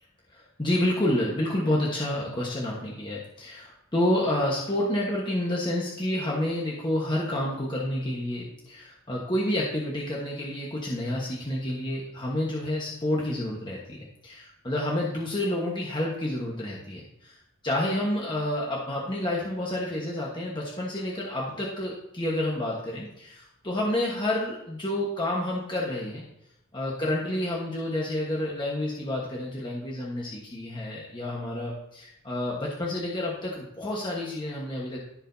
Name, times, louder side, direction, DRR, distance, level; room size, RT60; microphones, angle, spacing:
voice 1, 0.3-17.4 17.6-26.3 26.7-35.0, left 1 dB, 20° left, -4 dB, 1.3 m, -29 dB
14.0 x 5.0 x 2.7 m, 0.82 s
head